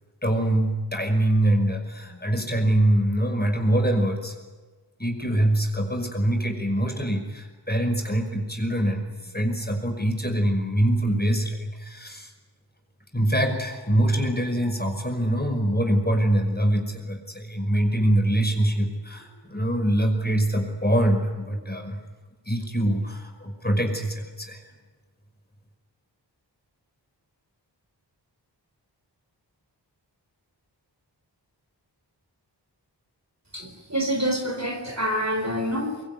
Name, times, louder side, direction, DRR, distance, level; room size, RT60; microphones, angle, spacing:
voice 1, 0.2-4.3 5.0-12.3 13.1-22.0 22.5-24.6, right 1 dB, 20° left, 4 dB, 5.5 m, -24 dB
voice 2, 33.5-36.0, equal, 40° right, 4 dB, 4.5 m, -27 dB
24.5 x 23.0 x 9.5 m, 1.3 s
wide cardioid pair, 60°, 43 cm